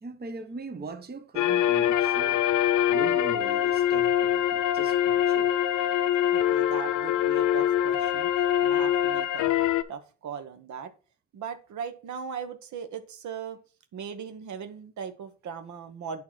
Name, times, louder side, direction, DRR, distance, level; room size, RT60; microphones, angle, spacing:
voice 1, 0.0-2.4 2.9-5.5, right 4 dB, 30° right, 1.0 m, -40 dB
sound 1, 1.4-9.8, left 11 dB, 80° left, 0.6 m, -24 dB
voice 2, 6.3-8.3 8.6-9.5 9.9-10.9 11.3-13.6 13.9-16.2, right 7 dB, 70° right, 1.1 m, -38 dB
8.6 x 3.0 x 5.9 m
cardioid pair, 90°, 30 cm